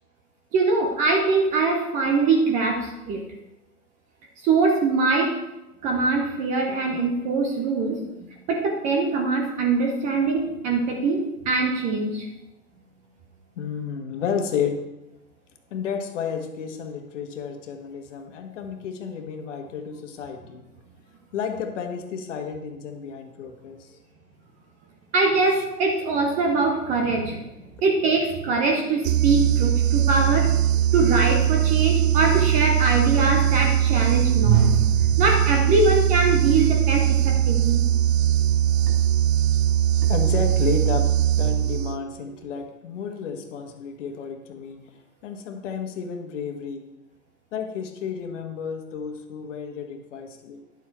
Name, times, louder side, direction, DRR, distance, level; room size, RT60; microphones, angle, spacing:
voice 1, 0.5-3.2 4.4-5.4 5.8-8.0 8.5-12.3 25.1-27.5 27.8-30.5 30.9-37.8, right 3 dB, 15° right, 2 dB, 0.7 m, -22 dB
voice 2, 13.6-14.8 15.7-20.6 21.3-23.9 40.1-41.1 41.4-44.8 45.2-46.8 47.5-50.6, left 6 dB, 50° left, 4 dB, 1.6 m, -31 dB
sound 1, 29.0-42.2, right 11 dB, 55° right, 0.5 m, -21 dB
10.5 x 7.4 x 4.5 m, 0.97 s
hypercardioid pair, 135°, 47 cm